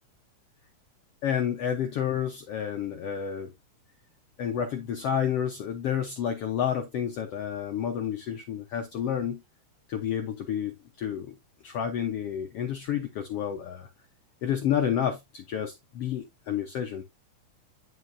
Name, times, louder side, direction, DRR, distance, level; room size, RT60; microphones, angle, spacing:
voice 1, 1.2-3.5 4.4-9.4 9.9-11.3 11.6-13.9 14.4-17.0, left 9 dB, 70° left, 1.4 m, -30 dB
9.7 x 5.8 x 2.6 m
omnidirectional pair, 3.8 m